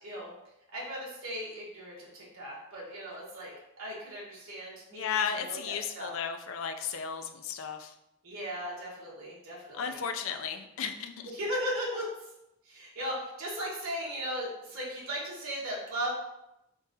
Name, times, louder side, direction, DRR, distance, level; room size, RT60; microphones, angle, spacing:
voice 1, 0.0-0.3 0.7-3.5 3.8-6.1 8.2-10.0 11.3-12.3 12.6-16.1, equal, 75° right, -5 dB, 1.2 m, -37 dB
voice 2, 4.9-7.9 9.8-11.1, left 7 dB, 65° left, 6 dB, 0.4 m, -34 dB
3.8 x 3.6 x 2.7 m, 0.87 s
head